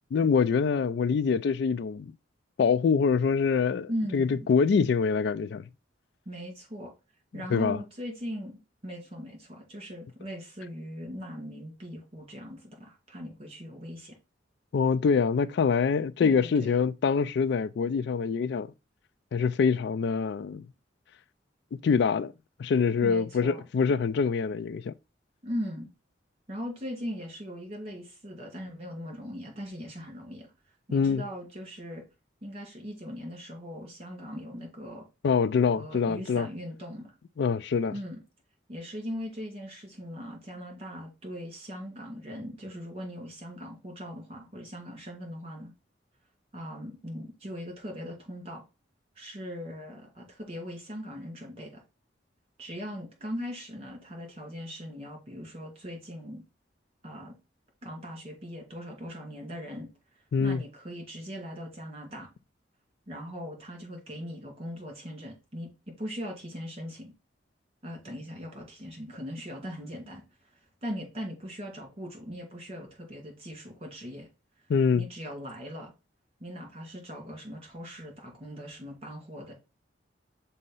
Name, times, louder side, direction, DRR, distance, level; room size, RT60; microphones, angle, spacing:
voice 1, 0.1-2.1 2.6-5.6 7.5-7.8 14.7-18.7 19.3-20.7 21.8-22.3 22.6-24.9 30.9-31.2 35.2-36.5 37.4-37.9 60.3-60.6 74.7-75.0, left 5 dB, 65° left, 0.3 m, -25 dB
voice 2, 3.9-4.5 6.3-6.9 7.3-14.2 16.2-16.7 23.0-23.6 25.4-25.9 26.5-30.5 30.9-32.0 32.4-35.1 35.8-37.1 37.9-38.2 38.7-45.7 46.5-48.6 49.2-51.8 52.6-56.4 57.0-57.4 57.8-59.9 60.4-62.3 63.1-65.7 66.0-67.1 67.8-70.2 70.8-74.3 74.9-75.9 76.4-79.5, equal, 35° right, 2.5 m, -39 dB
6.3 x 2.7 x 5.4 m
head